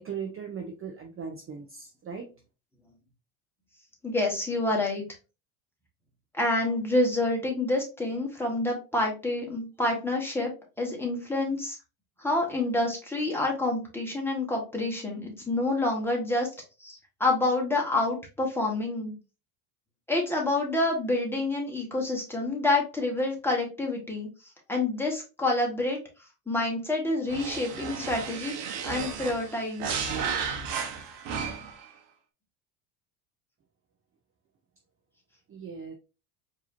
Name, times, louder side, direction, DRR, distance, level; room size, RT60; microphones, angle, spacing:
voice 1, 0.0-2.3 35.5-35.9, right 6 dB, 30° right, 2 dB, 0.7 m, -38 dB
voice 2, 4.0-5.0 6.3-10.5 10.8-11.8 12.2-16.5 16.8-19.1 20.1-24.3 24.7-26.0 26.5-28.5 28.8-30.0, left 2 dB, 5° left, -1 dB, 1.4 m, -28 dB
sound 1, 27.3-31.8, right 6 dB, 55° right, 1.0 m, -33 dB
4.6 x 3.0 x 2.7 m, 0.31 s
supercardioid pair, 105°, 46 cm